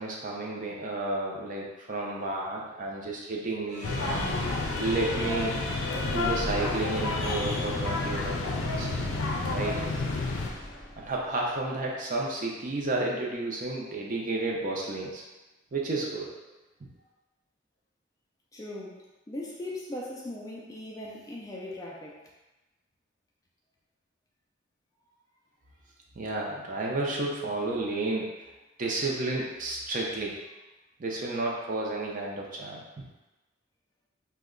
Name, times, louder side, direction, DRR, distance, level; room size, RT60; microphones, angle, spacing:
voice 1, 0.0-4.4 4.8-5.6 6.1-8.9 9.5-9.8 11.0-15.2 15.7-16.3 16.8-16.9 26.2-28.4 28.8-30.4 31.0-33.1, right 2 dB, 40° right, -2 dB, 0.5 m, -32 dB
sound 1, 3.7-12.2, left 1 dB, 35° left, 0.7 m, -41 dB
sound 2, 3.8-10.5, left 3 dB, 90° left, 0.5 m, -30 dB
voice 2, 18.5-22.3, left 1 dB, 15° left, -3 dB, 0.3 m, -39 dB
2.8 x 2.1 x 3.7 m, 1.1 s
head